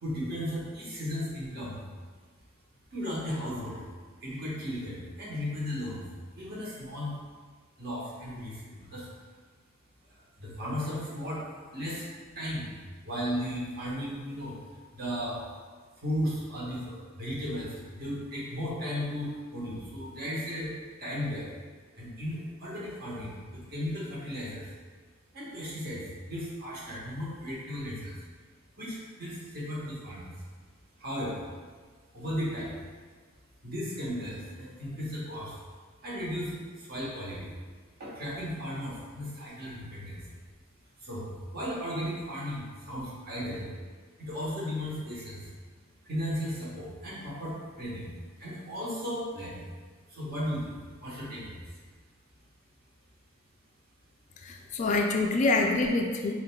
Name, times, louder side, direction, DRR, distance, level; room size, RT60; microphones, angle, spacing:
voice 1, 0.0-1.8 2.9-3.8 4.2-6.1 6.4-7.1 7.8-9.1 10.1-11.4 11.7-12.1 12.3-12.7 13.0-14.6 14.9-15.4 16.0-20.7 21.0-21.5 22.0-24.7 25.3-28.2 28.8-30.3 31.0-31.4 32.1-32.8 33.6-35.6 36.0-37.5 38.0-40.3 41.0-43.7 44.2-45.5 46.0-48.1 48.4-49.7 50.1-51.6, equal, 50° right, -6 dB, 1.2 m, -35 dB
voice 2, 54.4-56.3, left 2 dB, 40° left, 2 dB, 0.3 m, -26 dB
4.2 x 3.9 x 2.2 m, 1.5 s
head